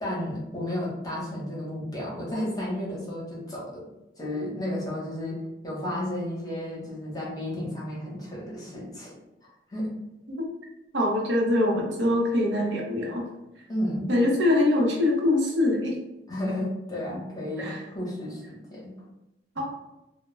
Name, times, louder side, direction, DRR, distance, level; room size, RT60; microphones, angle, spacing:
voice 1, 0.0-3.8 4.2-9.1 9.7-9.9 13.7-14.1 16.3-18.8, left 1 dB, 20° left, -5 dB, 0.8 m, -32 dB
voice 2, 10.9-13.2 14.1-16.0 17.6-17.8 19.6-19.7, left 1 dB, 85° right, -1 dB, 0.7 m, -23 dB
2.1 x 2.1 x 3.1 m, 0.93 s
head